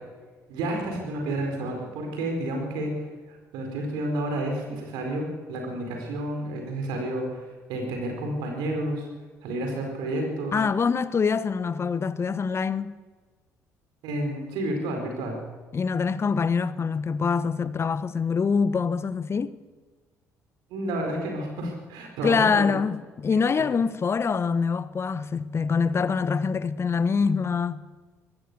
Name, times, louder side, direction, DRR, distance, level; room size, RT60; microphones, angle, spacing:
voice 1, 0.5-9.1 9.4-10.6 14.0-15.4 20.7-22.7, right 1 dB, 60° right, 4.3 m, -30 dB
voice 2, 10.5-13.0 15.7-19.5 22.2-27.8, left 5 dB, 30° left, 1.0 m, -25 dB
23.5 x 17.0 x 6.7 m
figure-of-eight pair, 50°, 8 cm